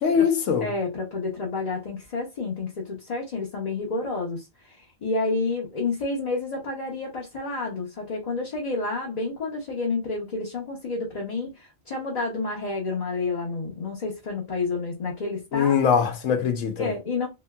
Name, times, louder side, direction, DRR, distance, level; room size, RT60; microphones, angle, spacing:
voice 1, 0.0-0.7 15.5-16.9, left 7 dB, 85° left, 1.1 m, -22 dB
voice 2, 0.6-15.8 16.8-17.3, left 3 dB, 40° left, 0.7 m, -30 dB
3.0 x 2.7 x 2.3 m
omnidirectional pair, 1.3 m